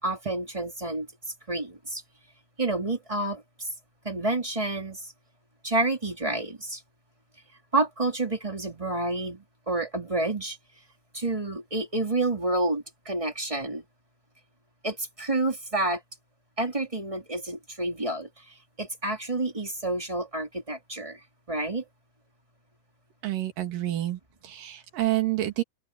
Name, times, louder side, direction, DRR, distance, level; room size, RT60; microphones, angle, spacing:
voice 1, 0.0-1.1 1.5-2.0 2.6-3.7 4.0-5.0 5.6-6.8 7.7-10.6 11.1-13.8 14.8-16.0 16.6-18.3 18.8-21.2 21.5-21.8, right 2 dB, 10° right, 1.7 m, -29 dB
voice 2, 23.2-25.6, right 15 dB, 55° right, 3.3 m, -28 dB
open air
omnidirectional pair, 5.0 m